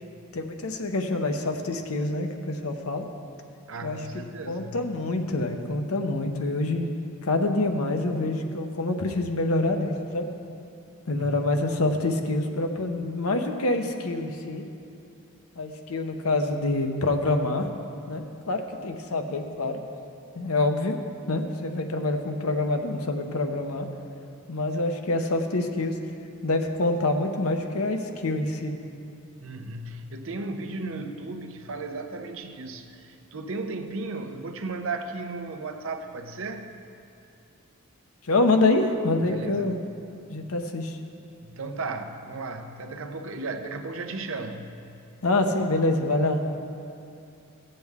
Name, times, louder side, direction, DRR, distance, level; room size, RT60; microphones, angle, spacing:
voice 1, 0.3-3.1 3.8-6.9 7.2-10.3 11.1-14.6 15.6-17.7 18.1-19.8 20.3-20.9 21.3-23.9 24.5-26.0 26.4-28.7 38.2-39.8 40.3-41.0 45.2-46.4, left 2 dB, 75° left, 5 dB, 0.8 m, -26 dB
voice 2, 3.7-4.8 11.1-11.5 29.4-36.7 39.2-39.7 41.4-44.7, right 3 dB, 60° right, 6 dB, 0.7 m, -35 dB
16.5 x 7.7 x 3.6 m, 2.6 s
head